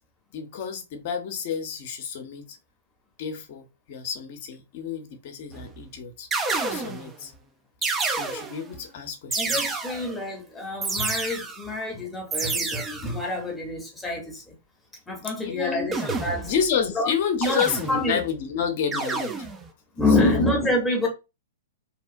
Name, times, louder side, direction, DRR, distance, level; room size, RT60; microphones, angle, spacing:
voice 1, 0.3-2.6 3.2-6.3 6.7-7.3 8.1-9.8 15.4-15.9 16.4-19.5 20.1-20.4, left 7 dB, 50° left, 0.7 m, -30 dB
sound 1, 5.5-5.8 6.3-7.1 7.8-8.7 9.3-10.2 10.8-11.7 12.3-13.2 15.9-16.7 17.4-18.3 18.9-19.7, right 3 dB, 15° right, 0.5 m, -29 dB
voice 2, 9.4-14.4 15.1-16.5 16.9-17.1 17.4-17.6 17.9-18.2 20.0-21.1, left 2 dB, 10° left, 0.8 m, -26 dB
2.8 x 2.1 x 2.5 m
hypercardioid pair, 115°, 0 cm